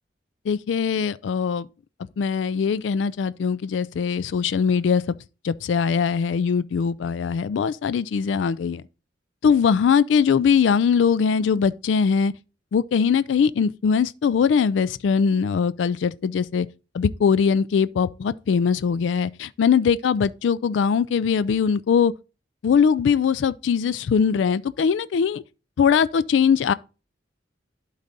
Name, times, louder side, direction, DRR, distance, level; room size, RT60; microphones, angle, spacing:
voice 1, 0.5-1.7 2.2-5.0 5.4-8.8 9.4-12.3 12.7-16.7 16.9-22.1 22.6-25.4 25.8-26.7, left 6 dB, 80° left, 0.3 m, -21 dB
11.5 x 4.0 x 4.0 m
head